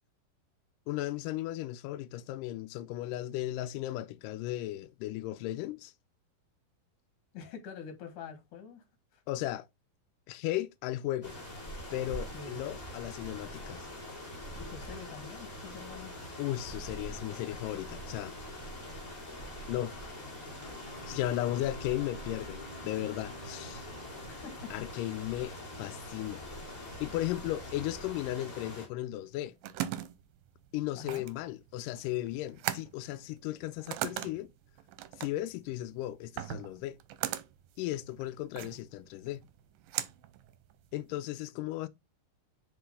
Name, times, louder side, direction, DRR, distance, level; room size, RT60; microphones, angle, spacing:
voice 1, 0.9-5.9 9.3-9.7 10.3-11.4 11.9-13.9 16.4-18.4 19.7-20.0 21.1-23.9 24.7-26.4 27.0-29.6 30.7-34.5 35.2-37.0 37.8-39.4 40.9-41.9, left 14 dB, 85° left, 1.9 m, -35 dB
voice 2, 7.3-8.8 9.1-9.2 12.3-12.6 14.6-16.1 24.2-24.7 25.0-25.2 30.9-31.2, left 6 dB, 60° left, 2.8 m, -46 dB
sound 1, 11.2-28.9, left 1 dB, 15° left, 1.9 m, -44 dB
Wind instrument woodwind instrument, 20.6-24.3, left 1 dB, 40° left, 2.9 m, -50 dB
sound 2, 29.2-41.1, right 13 dB, 80° right, 2.3 m, -40 dB
6.0 x 5.1 x 3.5 m
omnidirectional pair, 4.3 m